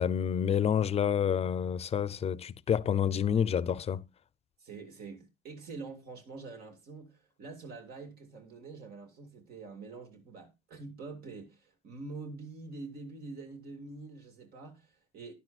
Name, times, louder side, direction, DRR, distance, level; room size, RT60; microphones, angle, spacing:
voice 1, 0.0-4.0, left 8 dB, 40° left, 0.6 m, -28 dB
voice 2, 4.6-15.3, right 3 dB, 65° right, 2.2 m, -45 dB
12.5 x 10.5 x 2.4 m
cardioid pair, 110°, 17 cm